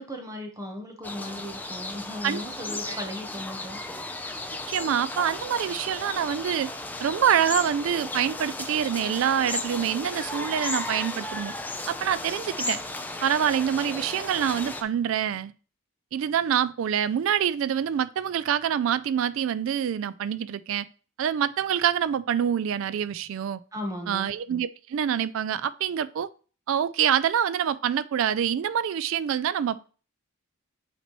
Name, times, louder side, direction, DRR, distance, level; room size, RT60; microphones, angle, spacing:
voice 1, 0.0-3.8 23.7-24.3, left 1 dB, 15° right, 1.0 m, -36 dB
sound 1, 1.0-14.8, left 2 dB, 10° left, 0.4 m, -35 dB
voice 2, 4.7-6.7 7.0-11.5 11.9-12.8 13.2-15.5 16.1-20.9 21.2-23.6 24.1-26.3 26.7-29.8, right 9 dB, 65° right, 0.3 m, -26 dB
8.0 x 4.4 x 3.0 m
head